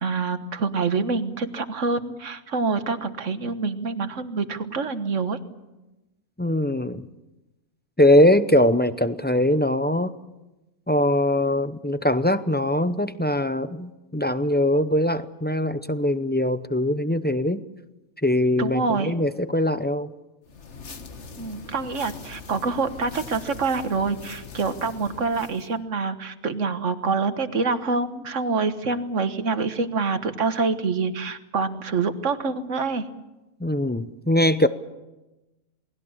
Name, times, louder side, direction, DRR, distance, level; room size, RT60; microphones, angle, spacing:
voice 1, 0.0-5.4 18.6-19.1 21.4-33.1, right 4 dB, 60° right, 9 dB, 1.7 m, -26 dB
voice 2, 6.4-7.0 8.0-10.1 10.9-17.6 18.2-20.1 33.6-34.7, left 1 dB, 15° left, 11 dB, 0.4 m, -21 dB
sound 1, 20.5-25.7, left 5 dB, 55° left, 1.6 m, -42 dB
28.5 x 20.0 x 7.2 m, 1.0 s
omnidirectional pair, 1.5 m